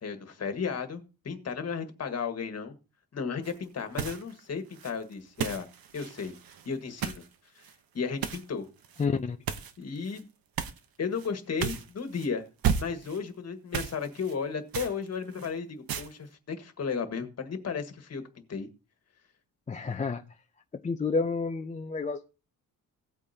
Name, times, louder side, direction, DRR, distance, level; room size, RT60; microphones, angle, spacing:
voice 1, 0.0-2.7 3.1-5.7 5.9-6.3 6.7-7.2 7.6-7.7 7.9-8.7 9.8-10.3 11.0-12.5 12.8-18.2 18.5-18.7, left 5 dB, 45° left, 1.6 m, -34 dB
sound 1, 3.4-3.6 3.9-4.4 4.7-7.3 7.6-7.7 8.2-8.4 8.8-9.0 9.5-10.2 10.6-10.8 11.2-11.3 11.6-12.3 12.6-13.2 13.7-14.3 14.7-15.5 15.9-16.1, right 8 dB, 70° right, 1.1 m, -34 dB
voice 2, 9.0-9.4 19.7-20.2 20.8-22.3, left 4 dB, 20° left, 0.5 m, -29 dB
16.5 x 8.5 x 2.8 m
cardioid pair, 145°, 37 cm